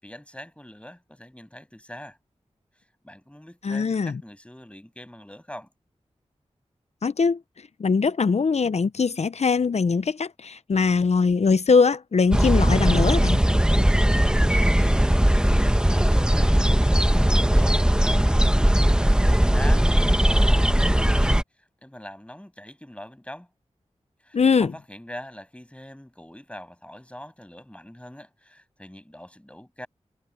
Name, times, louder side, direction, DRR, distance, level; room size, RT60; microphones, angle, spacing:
voice 1, 0.0-2.2 2.8-5.7 14.8-15.1 15.5-16.7 17.0-18.4 18.8-23.5 24.2-29.9, left 1 dB, 10° left, 7.5 m, -43 dB
voice 2, 3.6-4.2 7.0-7.4 7.8-13.4 24.3-24.7, left 5 dB, 65° left, 0.7 m, -21 dB
sound 1, 12.3-21.4, equal, 5° right, 1.1 m, -19 dB
cardioid pair, 45°, 12 cm